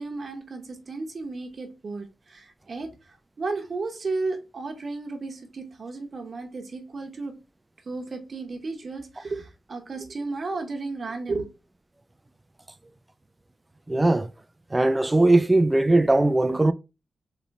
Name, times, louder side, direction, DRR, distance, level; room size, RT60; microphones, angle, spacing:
voice 1, 0.0-7.4 7.8-11.5, right 3 dB, 40° right, 0.8 m, -33 dB
voice 2, 13.9-14.3 14.7-16.7, right 2 dB, 15° right, 0.3 m, -19 dB
4.1 x 2.9 x 4.4 m
wide cardioid pair, 150°, 0 cm